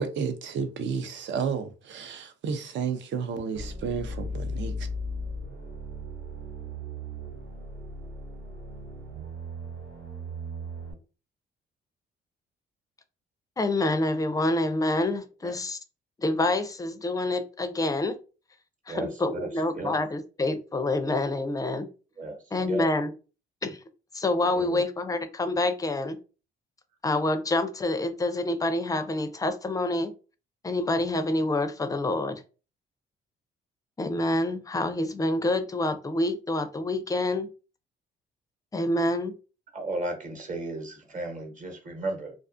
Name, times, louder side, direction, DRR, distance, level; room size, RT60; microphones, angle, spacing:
voice 1, 0.0-4.9, right 6 dB, 65° right, 0.6 m, -32 dB
sound 1, 3.5-10.9, equal, 90° right, 1.3 m, -37 dB
voice 2, 13.6-15.8 16.2-18.2 18.9-21.9 22.5-23.1 23.6-23.8 24.1-26.2 27.0-30.1 30.6-32.4 34.0-37.5 38.7-39.3, left 2 dB, 15° left, 0.4 m, -27 dB
voice 3, 18.9-20.0 22.2-22.9 24.4-24.9 39.7-42.3, right 2 dB, 40° right, 1.0 m, -35 dB
2.4 x 2.4 x 2.4 m
cardioid pair, 90°, 20 cm